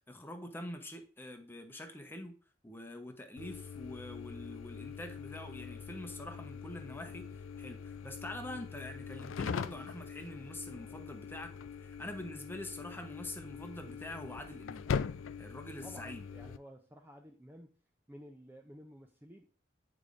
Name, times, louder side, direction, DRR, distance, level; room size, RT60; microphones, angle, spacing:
voice 1, 0.1-2.3 2.6-7.3 7.6-11.5 11.8-14.9 15.4-16.3, left 1 dB, 10° left, 0.9 m, -45 dB
sound 1, 3.4-16.6, left 6 dB, 90° left, 0.4 m, -42 dB
voice 2, 15.8-17.8 18.1-19.5, equal, 10° right, 0.5 m, -53 dB
8.8 x 4.9 x 2.5 m
head